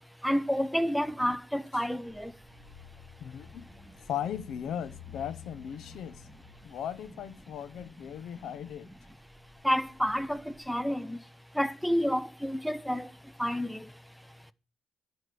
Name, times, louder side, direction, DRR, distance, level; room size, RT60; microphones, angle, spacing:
voice 1, 0.2-2.3 9.6-10.4 10.7-11.2 11.6-13.1 13.4-13.8, equal, ahead, 0.6 m, -29 dB
sound 1, 2.0-10.7, left 6 dB, 20° left, 3.7 m, -53 dB
voice 2, 3.2-3.7 4.1-6.3 6.6-8.9, left 9 dB, 75° left, 0.7 m, -37 dB
11.0 x 4.7 x 6.7 m
cardioid pair, 90°, 0 cm